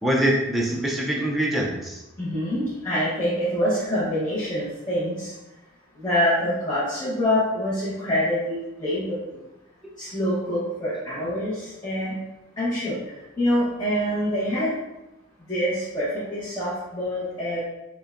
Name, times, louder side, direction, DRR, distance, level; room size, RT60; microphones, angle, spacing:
voice 1, 0.0-2.0, right 1 dB, ahead, -4 dB, 0.4 m, -24 dB
voice 2, 2.2-5.3 6.0-9.2 10.0-12.1 12.6-13.0 13.4-14.7 15.5-17.6, equal, 15° left, -11 dB, 0.8 m, -25 dB
5.1 x 2.2 x 2.4 m, 0.98 s
head